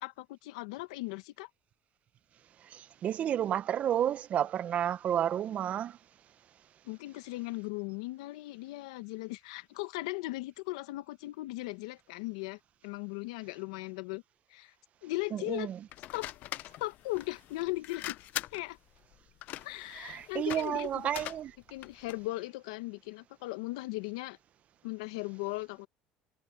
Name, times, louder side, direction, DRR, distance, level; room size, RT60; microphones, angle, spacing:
voice 1, 0.0-1.5 6.8-14.2 14.5-14.7 15.0-15.7 16.1-16.3 16.8-18.2 18.5-18.8 19.6-21.1 21.7-24.4 24.8-25.9, left 20 dB, 90° left, 1.2 m, -38 dB
voice 2, 2.7-6.0 15.5-15.7 20.0-21.5, right 10 dB, 50° right, 1.0 m, -31 dB
sound 1, 15.9-22.3, left 15 dB, 65° left, 0.6 m, -43 dB
supercardioid pair, 90°, 3 cm